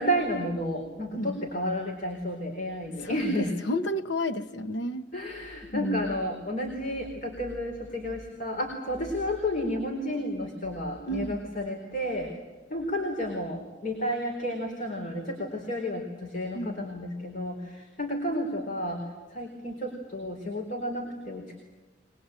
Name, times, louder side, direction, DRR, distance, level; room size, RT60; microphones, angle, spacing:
voice 1, 0.0-3.5 5.1-12.4 12.7-19.0 19.3-21.6, equal, 45° left, 4.2 m, -31 dB
voice 2, 2.9-5.1 5.7-6.1 11.1-11.4 16.5-16.9, equal, 80° left, 1.0 m, -32 dB
23.5 x 21.5 x 8.9 m
head